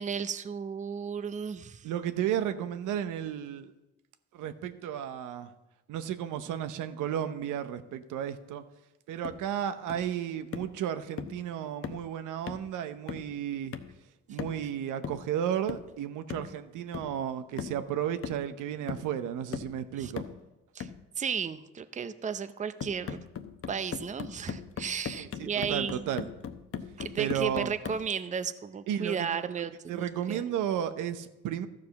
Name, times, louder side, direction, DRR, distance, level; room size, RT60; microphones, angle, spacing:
voice 1, 0.0-1.9 14.3-14.4 20.0-20.1 20.7-20.9 21.2-23.2 23.7-26.1 27.0-30.4, right 6 dB, 25° right, 12 dB, 0.6 m, -34 dB
voice 2, 1.8-3.7 4.3-5.5 5.9-8.6 9.1-13.8 14.3-20.2 25.1-26.3 27.2-27.7 28.9-31.7, right 9 dB, 85° right, 10 dB, 0.8 m, -33 dB
sound 1, 9.2-9.5 9.9-10.1 10.5-10.8 11.2-11.4 11.8-12.1 12.5-12.7 13.1-13.4 13.7-14.0 14.4-14.7 15.0-15.3 15.7-15.9 16.3-16.6 16.9-17.2 17.6-17.8 18.2-18.6 18.9-19.1 19.5-19.8 20.2-20.4 20.8-21.0 22.8-28.1, left 7 dB, 50° left, 0.9 m, -39 dB
13.0 x 4.9 x 7.0 m, 0.99 s
cardioid pair, 90°, 30 cm